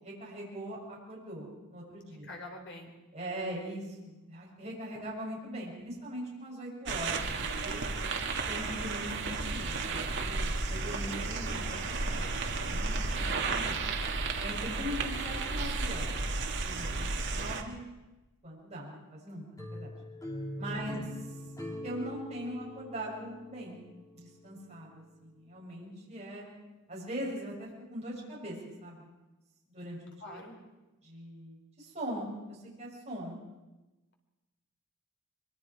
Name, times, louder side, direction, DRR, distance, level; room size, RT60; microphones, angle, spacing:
voice 1, 0.0-2.3 3.1-7.9 8.5-11.8 12.1-14.0 14.4-16.2 16.6-17.0 17.3-17.8 18.4-20.0 20.6-21.0 21.8-23.8 24.1-26.4 26.9-28.5 28.8-29.1 29.7-30.4 31.0-33.4, equal, 30° right, -4 dB, 6.6 m, -41 dB
voice 2, 2.2-2.9 14.6-14.8 20.7-21.1 30.2-30.6, left 2 dB, 55° left, 2 dB, 3.9 m, -46 dB
sound 1, 6.9-17.6, right 3 dB, 55° right, 1.9 m, -33 dB
sound 2, 19.6-24.5, left 1 dB, 15° left, 3.7 m, -42 dB
24.5 x 22.5 x 4.9 m, 1.1 s
head